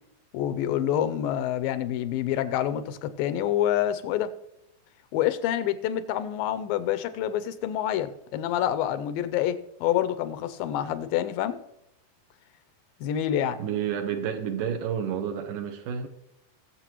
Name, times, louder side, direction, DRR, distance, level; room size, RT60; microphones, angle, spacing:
voice 1, 0.3-4.3 5.1-11.6 13.0-13.6, left 11 dB, 85° left, 13 dB, 2.4 m, -27 dB
voice 2, 13.6-16.1, right 8 dB, 75° right, 5 dB, 2.4 m, -30 dB
19.5 x 7.5 x 3.0 m, 0.82 s
omnidirectional pair, 4.0 m